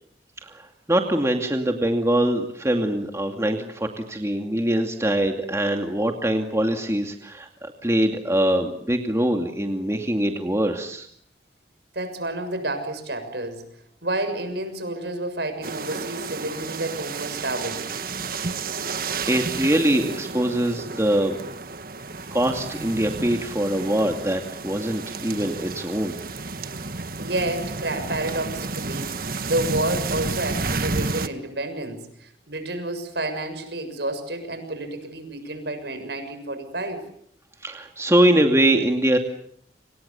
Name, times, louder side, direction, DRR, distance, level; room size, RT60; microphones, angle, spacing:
voice 1, 0.4-11.1 18.8-21.4 22.3-26.2 37.6-39.2, right 1 dB, 15° right, 3 dB, 2.4 m, -23 dB
voice 2, 11.9-13.7 14.0-17.9 26.9-29.1 29.4-37.1, right 1 dB, 70° right, 9 dB, 6.8 m, -30 dB
sound 1, 15.6-31.3, right 4 dB, 55° right, 1.7 m, -31 dB
30.0 x 27.5 x 7.1 m, 0.69 s
head